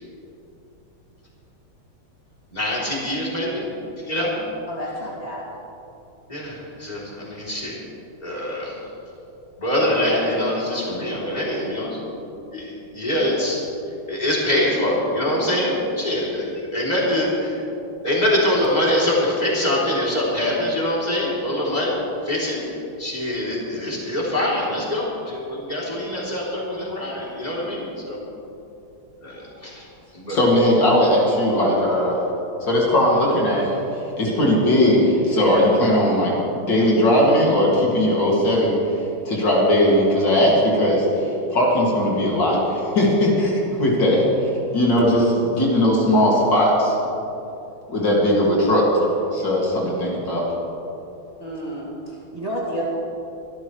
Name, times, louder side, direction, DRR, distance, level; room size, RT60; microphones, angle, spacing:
voice 1, 2.5-3.7 4.1-4.4 6.3-7.8 8.2-8.8 9.6-12.1 12.5-13.6 14.1-17.6 18.0-21.9 22.2-28.2 29.2-29.9 30.1-30.4, left 1 dB, 20° left, -6 dB, 3.5 m, -24 dB
voice 2, 4.7-5.4 51.4-52.8, equal, 15° right, -6 dB, 2.3 m, -30 dB
voice 3, 30.3-32.2 32.6-33.8 34.2-38.7 39.2-47.0 47.9-49.0 49.3-50.5, left 1 dB, 55° left, -4 dB, 3.1 m, -18 dB
24.0 x 12.5 x 3.2 m, 2.9 s
omnidirectional pair, 2.3 m